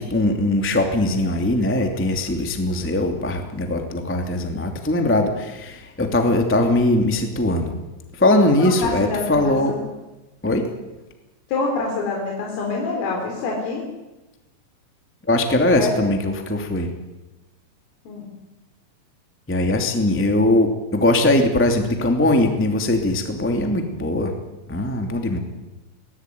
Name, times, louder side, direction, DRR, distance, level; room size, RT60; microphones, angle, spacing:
voice 1, 0.0-7.7 8.2-9.7 10.4-10.7 15.3-16.9 19.5-24.3 24.7-25.4, left 1 dB, 20° left, 4 dB, 0.3 m, -20 dB
voice 2, 8.8-9.8 11.5-13.8 15.8-16.0 18.1-18.3, left 3 dB, 75° left, 0 dB, 6.4 m, -26 dB
24.5 x 19.0 x 9.4 m, 1.1 s
omnidirectional pair, 5.9 m